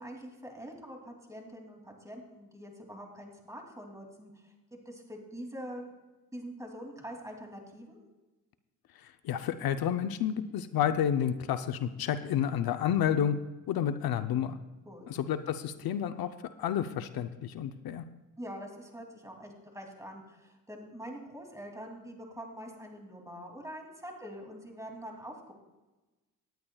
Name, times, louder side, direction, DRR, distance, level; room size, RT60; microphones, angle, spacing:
voice 1, 0.0-5.8 6.3-8.0 14.9-15.1 18.4-25.5, equal, 10° right, 1 dB, 2.7 m, -45 dB
voice 2, 9.0-13.4 13.7-14.6 15.1-16.3 16.6-18.0, left 9 dB, 75° left, 10 dB, 0.7 m, -30 dB
18.5 x 10.5 x 2.3 m, 1.1 s
cardioid pair, 90°, 36 cm